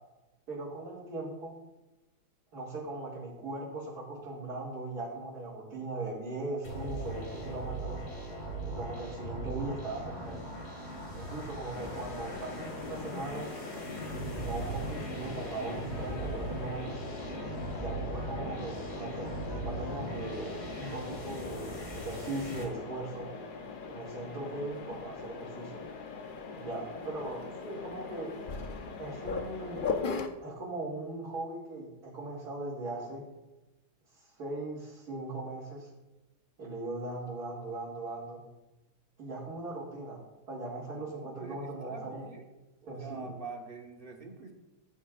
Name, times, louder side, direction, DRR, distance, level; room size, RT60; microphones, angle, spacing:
voice 1, 0.5-1.5 2.5-8.0 8.7-10.4 11.1-13.5 14.2-17.0 17.6-23.3 23.9-25.8 26.6-28.3 29.0-29.8 30.4-33.2 34.1-35.9 36.6-38.4 39.2-40.2 40.5-42.3 42.9-43.3, right 2 dB, 60° right, -8 dB, 2.7 m, -39 dB
sound 1, 6.6-22.6, right 1 dB, 40° left, 2.3 m, -39 dB
Brass instrument, 11.2-16.8 17.3-22.1, equal, 15° right, 1.6 m, -53 dB
Mechanisms, 11.8-30.3, left 4 dB, 85° left, 0.4 m, -41 dB
voice 2, 40.9-42.5 42.8-44.5, right 3 dB, 35° right, 2 dB, 1.1 m, -45 dB
15.0 x 9.0 x 2.4 m, 1.0 s
omnidirectional pair, 2.0 m